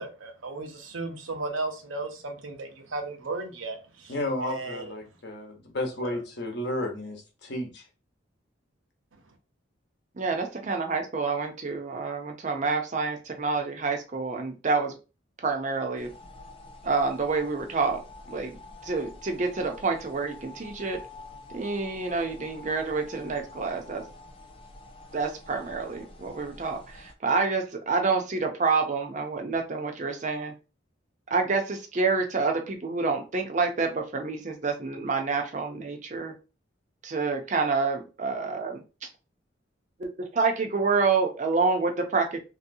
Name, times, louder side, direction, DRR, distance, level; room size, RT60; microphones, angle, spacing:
voice 1, 0.0-4.9 6.0-6.2, right 3 dB, 90° right, 0.7 m, -35 dB
voice 2, 4.1-7.8, left 1 dB, 60° left, 0.9 m, -32 dB
voice 3, 10.2-15.0 15.4-16.1 16.8-18.6 18.8-21.0 21.5-24.1 25.1-30.5 31.3-36.3 37.0-38.8 40.0-42.4, right 4 dB, 40° right, 0.5 m, -28 dB
sound 1, 16.0-27.1, left 2 dB, 25° left, 0.4 m, -47 dB
3.1 x 2.7 x 2.6 m
head